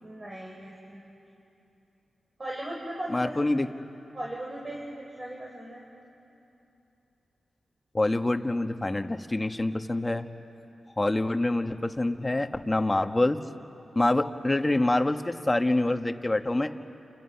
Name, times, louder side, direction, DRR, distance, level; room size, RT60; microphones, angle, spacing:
voice 1, 0.0-1.1 2.4-3.5 4.1-5.8, right 1 dB, 35° right, -3 dB, 4.8 m, -38 dB
voice 2, 3.1-3.7 7.9-10.3 11.0-13.4 13.9-16.7, left 2 dB, 25° left, 7 dB, 1.4 m, -26 dB
29.5 x 29.5 x 5.8 m, 2.9 s
cardioid pair, 45°, 0 cm